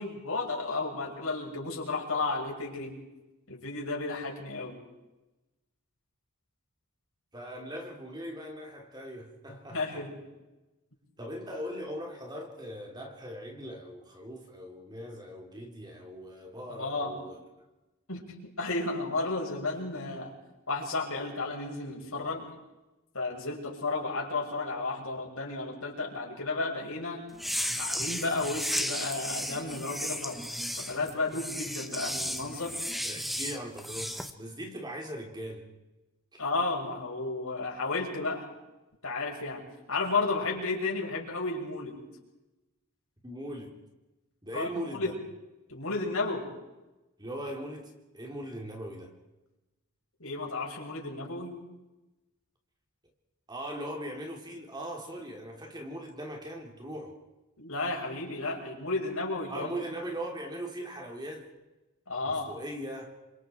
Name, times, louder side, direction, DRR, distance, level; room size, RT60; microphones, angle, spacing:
voice 1, 0.0-3.0 3.5-4.8 9.7-10.2 16.8-17.2 18.1-20.3 20.7-22.5 23.1-27.2 27.8-30.4 30.8-32.8 36.4-38.5 39.0-42.0 44.5-45.1 45.7-46.5 50.2-51.6 57.6-59.8 62.1-62.5, left 3 dB, 70° left, -1 dB, 6.8 m, -33 dB
voice 2, 7.3-10.1 11.2-17.7 33.0-35.7 36.3-36.4 43.2-43.8 44.4-45.2 47.2-49.2 53.5-57.2 59.5-61.5 62.3-63.2, equal, 20° right, 2 dB, 3.4 m, -40 dB
sound 1, 27.3-34.3, equal, ahead, 1.4 m, -34 dB
29.0 x 25.5 x 4.6 m, 1.0 s
head